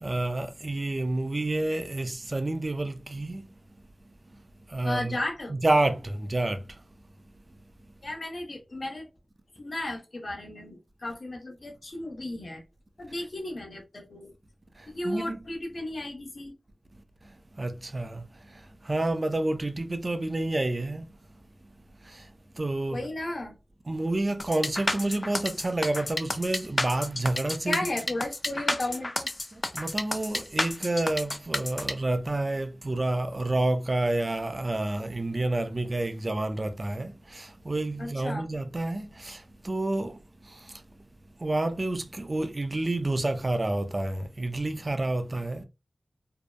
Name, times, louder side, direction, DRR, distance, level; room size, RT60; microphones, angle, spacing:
voice 1, 0.0-3.4 4.7-5.2 5.6-6.6 15.0-15.4 17.6-18.2 18.9-21.1 22.6-23.0 23.9-27.9 29.7-40.2 41.4-45.6, right 2 dB, 45° right, 0.4 m, -29 dB
voice 2, 4.8-5.5 8.0-9.1 9.6-12.6 13.0-14.3 14.9-16.5 22.9-23.5 27.6-29.3 38.0-38.5, left 1 dB, 60° left, 0.8 m, -34 dB
sound 1, 24.4-31.9, left 1 dB, 35° left, 0.4 m, -30 dB
2.6 x 2.1 x 2.3 m
cardioid pair, 40°, 0 cm